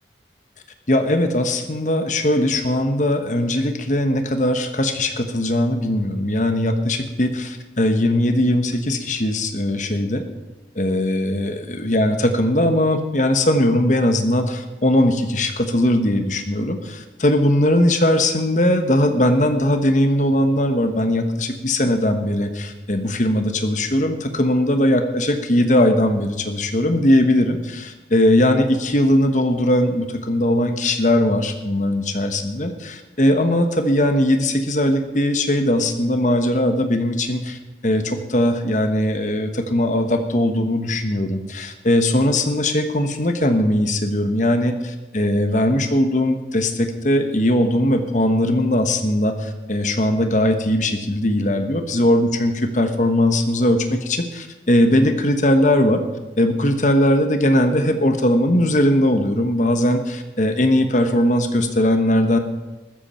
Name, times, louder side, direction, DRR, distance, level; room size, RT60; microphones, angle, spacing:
voice 1, 0.9-10.2 10.7-56.0 56.4-62.4, left 1 dB, 45° left, 7 dB, 1.3 m, -19 dB
15.0 x 13.5 x 4.4 m, 1.1 s
head